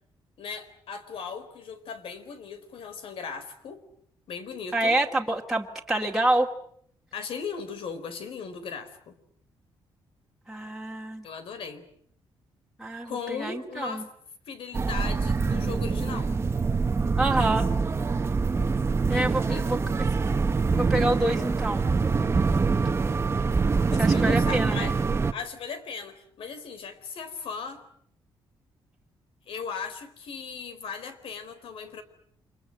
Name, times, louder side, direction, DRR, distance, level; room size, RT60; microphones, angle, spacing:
voice 1, 0.4-3.8 4.3-5.0 7.1-9.2 11.2-11.9 13.0-14.1 14.5-16.3 19.5-19.7 23.9-25.0 25.3-27.8 29.5-32.0, left 5 dB, 70° left, 10 dB, 4.2 m, -37 dB
voice 2, 4.7-6.5 10.5-11.2 12.8-14.0 17.2-17.7 19.1-19.8 20.7-21.9 24.0-24.9, right 1 dB, ahead, -2 dB, 2.6 m, -27 dB
sound 1, 14.7-25.3, right 4 dB, 25° right, 1.3 m, -25 dB
29.0 x 26.0 x 7.7 m, 0.65 s
cardioid pair, 125°, 10 cm